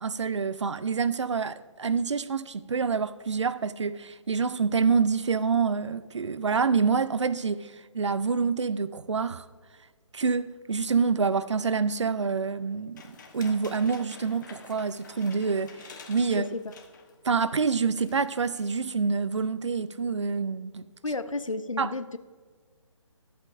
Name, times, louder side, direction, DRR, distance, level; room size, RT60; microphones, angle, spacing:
voice 1, 0.0-9.4 10.1-15.7 16.1-16.5 17.2-20.9 21.8-21.9, right 5 dB, 65° right, 0.5 m, -27 dB
sound 1, 13.0-17.2 17.5-17.6 17.9-18.8, left 5 dB, 35° left, 1.1 m, -49 dB
voice 2, 16.3-16.7 21.0-22.2, left 3 dB, 80° left, 0.7 m, -32 dB
12.5 x 8.4 x 2.6 m
figure-of-eight pair, 145°, 17 cm